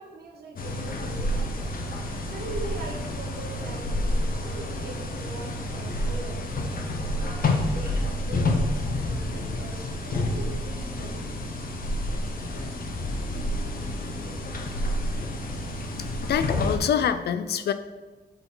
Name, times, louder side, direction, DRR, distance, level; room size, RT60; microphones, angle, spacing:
voice 1, 0.0-1.6 2.2-6.7 7.1-11.3, right 3 dB, 85° right, 0 dB, 1.2 m, -41 dB
sound 1, 0.6-16.8, left 1 dB, 60° left, 0.8 m, -29 dB
voice 2, 16.2-17.7, left 8 dB, 85° left, 11 dB, 0.4 m, -25 dB
6.7 x 3.9 x 3.9 m, 1.2 s
wide cardioid pair, 100°, 16 cm